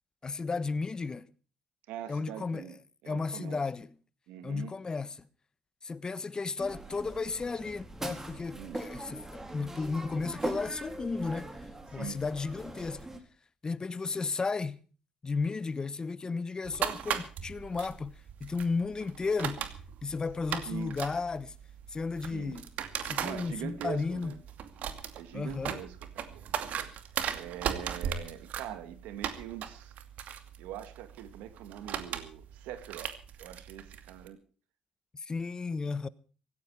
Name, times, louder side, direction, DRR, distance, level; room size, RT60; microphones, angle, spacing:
voice 1, 0.2-1.3 2.1-2.7 3.1-3.9 4.4-5.2 5.8-11.5 11.9-13.1 13.6-14.8 15.2-18.1 18.4-19.7 20.0-21.5 21.9-22.7 23.0-24.3 25.3-25.8 35.1-36.1, left 4 dB, 30° left, 1.2 m, -34 dB
voice 2, 1.9-2.8 3.0-3.6 4.3-4.8 8.5-8.8 11.9-12.2 20.6-21.0 22.3-22.6 23.2-24.4 25.1-26.8 27.3-29.9 30.6-34.4, right 11 dB, 90° right, 2.0 m, -43 dB
sound 1, 6.6-13.2, right 1 dB, 15° right, 4.3 m, -41 dB
sound 2, 16.6-34.3, right 9 dB, 70° right, 2.5 m, -38 dB
16.5 x 16.0 x 4.8 m
cardioid pair, 85°, 3 cm